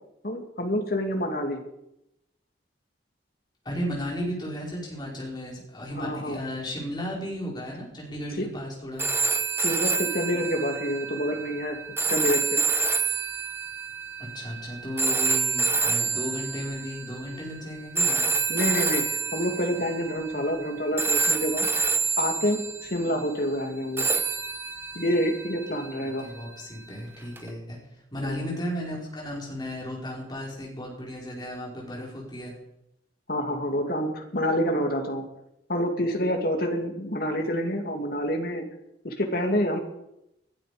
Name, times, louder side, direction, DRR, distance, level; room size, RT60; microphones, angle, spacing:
voice 1, 0.2-1.6 6.0-6.4 8.4-8.5 9.6-11.8 12.1-12.6 18.5-19.0 19.3-21.7 22.2-24.1 24.9-26.3 28.2-28.4 33.3-35.2 35.7-38.7 39.0-39.8, equal, 55° left, 4 dB, 2.6 m, -27 dB
voice 2, 3.7-9.1 14.2-18.3 26.0-27.8 28.1-32.5, equal, 25° left, -3 dB, 5.2 m, -34 dB
sound 1, 9.0-17.2 18.0-20.7 21.0-23.1 24.0-26.2 27.4-27.5, right 4 dB, 10° right, 1.0 m, -27 dB
21.0 x 12.5 x 5.2 m, 0.83 s
head